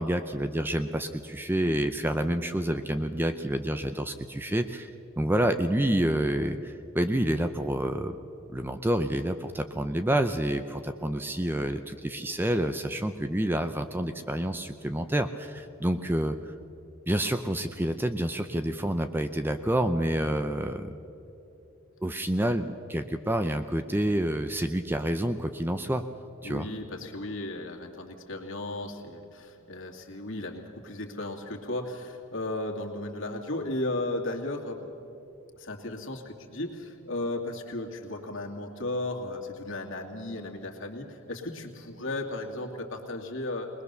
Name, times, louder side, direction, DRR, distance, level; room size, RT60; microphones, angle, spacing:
voice 1, 0.0-4.9 5.2-8.2 8.5-16.5 17.1-20.9 22.0-26.0 26.4-26.7, right 1 dB, 10° right, 8 dB, 0.5 m, -28 dB
voice 2, 26.4-34.9 35.6-43.7, left 2 dB, 60° left, 1 dB, 2.3 m, -35 dB
21.5 x 21.0 x 6.8 m, 2.9 s
head